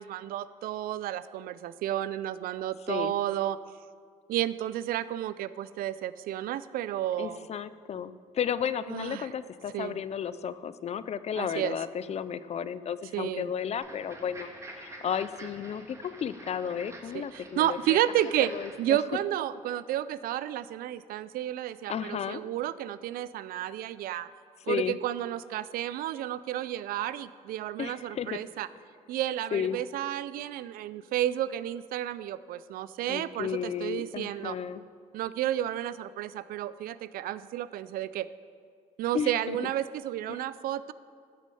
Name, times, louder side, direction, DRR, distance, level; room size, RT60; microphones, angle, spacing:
voice 1, 0.0-3.6 4.3-7.5 8.9-9.3 9.7-10.0 11.4-11.8 13.1-13.5 17.1-18.5 18.8-24.3 24.7-28.7 29.1-34.6 35.1-38.3 39.0-40.9, right 12 dB, 80° right, 16 dB, 0.4 m, -31 dB
voice 2, 7.2-18.0 18.4-19.0 21.9-22.4 24.7-25.0 27.8-28.4 29.5-29.8 33.1-34.8 39.1-39.6 40.3-40.4, left 8 dB, 45° left, 15 dB, 0.5 m, -33 dB
sound 1, 13.7-18.8, right 1 dB, 20° right, 1.9 m, -47 dB
13.5 x 6.3 x 6.9 m, 2.2 s
cardioid pair, 95°, 15 cm